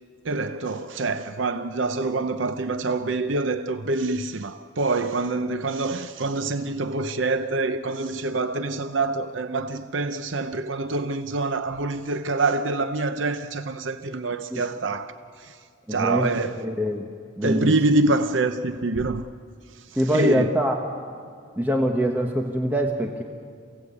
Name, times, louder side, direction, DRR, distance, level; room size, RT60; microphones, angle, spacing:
voice 1, 0.2-15.6 15.9-16.6 17.4-19.3 19.7-20.5, right 3 dB, 70° right, 0.7 m, -26 dB
voice 2, 15.9-17.1 17.4-17.7 19.9-20.8 21.6-23.2, equal, 10° right, 1.2 m, -24 dB
28.0 x 17.0 x 8.4 m
head